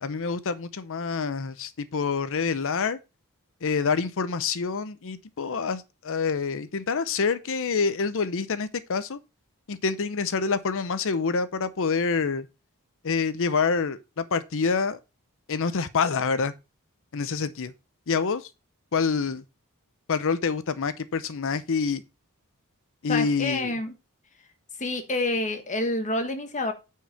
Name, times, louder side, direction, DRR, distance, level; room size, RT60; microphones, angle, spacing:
voice 1, 0.0-3.0 3.6-9.2 9.7-12.5 13.0-15.0 15.5-16.5 17.1-17.7 18.1-18.5 18.9-19.4 20.1-22.0 23.0-23.7, left 5 dB, 60° left, 0.7 m, -27 dB
voice 2, 23.1-23.9 24.8-26.7, left 2 dB, 35° left, 1.5 m, -28 dB
9.1 x 4.7 x 4.2 m
head